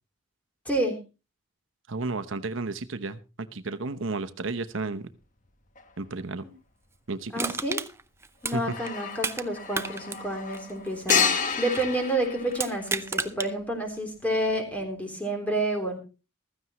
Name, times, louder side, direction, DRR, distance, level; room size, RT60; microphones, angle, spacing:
voice 1, 0.7-1.0 6.4-6.5 7.3-7.8 8.4-16.0, right 1 dB, 10° left, 3 dB, 3.5 m, -29 dB
voice 2, 1.9-3.2 3.5-5.1 6.0-6.4 7.1-7.3 8.5-8.6, right 3 dB, 80° right, 11 dB, 0.9 m, -32 dB
sound 1, 5.8-5.9 8.4-13.3, left 6 dB, 40° left, 1.4 m, -30 dB
Crushing, 7.4-9.5 9.7-11.9 12.5-13.5 14.0-14.1, right 4 dB, 15° right, 0.5 m, -33 dB
15.5 x 14.0 x 3.1 m, 0.30 s
head